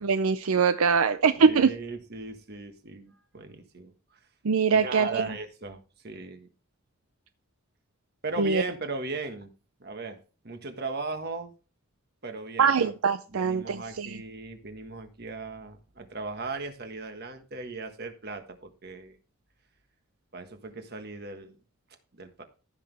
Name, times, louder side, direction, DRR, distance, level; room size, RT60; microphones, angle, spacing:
voice 1, 0.0-1.7 4.4-5.2 8.4-8.6 12.6-14.2, right 5 dB, 80° right, 0.5 m, -23 dB
voice 2, 1.3-3.9 4.7-5.8 6.0-6.5 8.2-9.5 9.8-11.5 12.2-12.9 13.3-19.2 20.3-21.5 22.1-22.4, right 3 dB, 45° right, 1.5 m, -37 dB
14.5 x 6.3 x 3.4 m
head